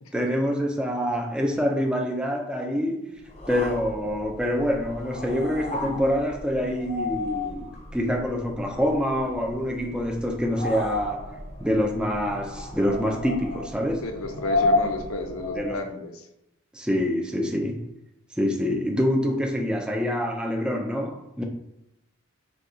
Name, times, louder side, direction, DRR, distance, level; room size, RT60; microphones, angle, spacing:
voice 1, 0.1-3.2 3.5-14.0 15.6-15.8 16.7-17.9 18.3-21.4, equal, 5° right, 0.4 m, -26 dB
sound 1, 3.3-15.9, left 2 dB, 30° left, 0.7 m, -32 dB
voice 2, 14.0-16.1, left 3 dB, 85° left, 0.6 m, -32 dB
6.5 x 2.3 x 2.7 m
head